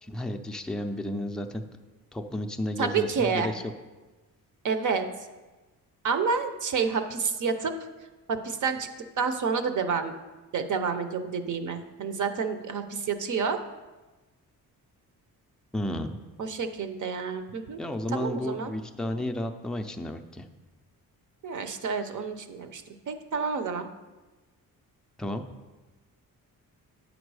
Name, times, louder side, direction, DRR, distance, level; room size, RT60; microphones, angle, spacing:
voice 1, 0.0-1.6 2.1-3.6 15.7-16.2 17.8-20.5 25.2-25.4, left 1 dB, ahead, 4 dB, 0.4 m, -32 dB
voice 2, 2.8-3.5 4.6-5.1 6.0-7.7 8.3-8.9 9.2-10.1 10.5-13.6 16.4-17.8 18.1-18.7 21.4-23.9, right 5 dB, 55° right, 9 dB, 0.7 m, -29 dB
8.8 x 5.2 x 4.7 m, 1.2 s
cardioid pair, 130°, 36 cm